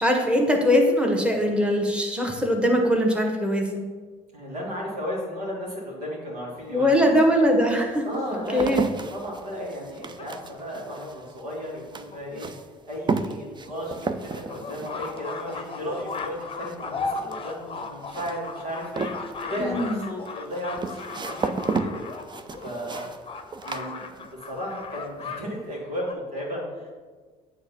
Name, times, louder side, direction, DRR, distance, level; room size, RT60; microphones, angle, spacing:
voice 1, 0.0-3.8 6.7-8.1 8.5-8.8 19.6-20.0, equal, 5° right, 1 dB, 1.3 m, -21 dB
voice 2, 4.3-7.1 8.0-12.5 12.8-21.5 21.8-22.0 22.6-23.1 23.6-26.9, equal, 85° right, -4 dB, 1.9 m, -34 dB
sound 1, 6.6-6.7 7.4-24.6 24.9-25.4, right 4 dB, 25° right, 0.5 m, -34 dB
sound 2, 9.3-10.9 11.7-11.8 12.1-12.2 12.5-12.6 13.0-13.1 13.6-25.4 25.7-26.1, left 4 dB, 30° left, 0.8 m, -37 dB
7.9 x 3.3 x 5.7 m, 1.5 s
hypercardioid pair, 55°, 20 cm